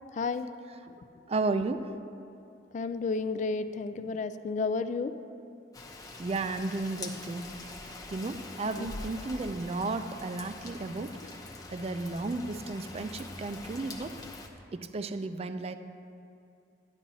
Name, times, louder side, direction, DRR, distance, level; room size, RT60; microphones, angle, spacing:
voice 1, 0.1-0.5 2.7-5.1 8.8-8.9, left 4 dB, 45° left, 11 dB, 0.3 m, -31 dB
voice 2, 1.3-1.9 6.2-7.8 8.1-11.1 11.7-14.1 14.7-15.7, right 3 dB, 35° right, 9 dB, 0.4 m, -33 dB
Rain, 5.7-14.5, left 2 dB, 20° left, 0.7 m, -44 dB
11.5 x 10.0 x 2.7 m, 2.5 s
head